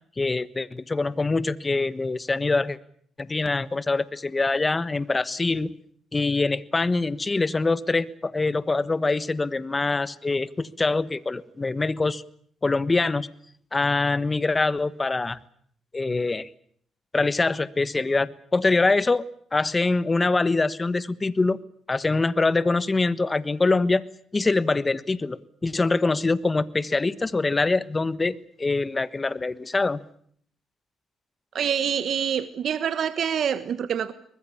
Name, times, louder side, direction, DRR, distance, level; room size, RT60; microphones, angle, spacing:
voice 1, 0.2-2.8 3.2-5.7 6.1-12.2 12.6-13.3 13.7-15.4 15.9-16.5 17.1-19.2 19.5-21.6 21.9-24.0 24.3-30.0, left 3 dB, 25° left, 1.2 m, -24 dB
voice 2, 31.5-34.1, right 8 dB, 60° right, 1.4 m, -26 dB
24.0 x 20.5 x 8.6 m
cardioid pair, 90°, 0 cm